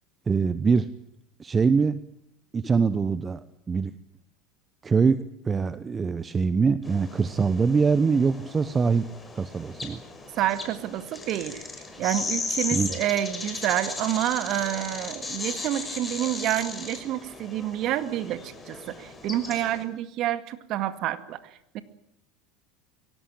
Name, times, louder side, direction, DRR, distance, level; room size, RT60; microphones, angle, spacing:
voice 1, 0.3-0.9 1.4-2.0 2.5-3.9 4.8-9.1 9.3-10.0 12.7-12.9, right 5 dB, 25° right, 14 dB, 1.1 m, -23 dB
sound 1, 6.8-19.8, left 3 dB, 15° left, 6.0 m, -36 dB
voice 2, 10.4-11.7 12.0-21.8, right 13 dB, 55° right, 11 dB, 2.1 m, -28 dB
23.0 x 18.0 x 9.0 m, 0.75 s
hypercardioid pair, 80°, 0 cm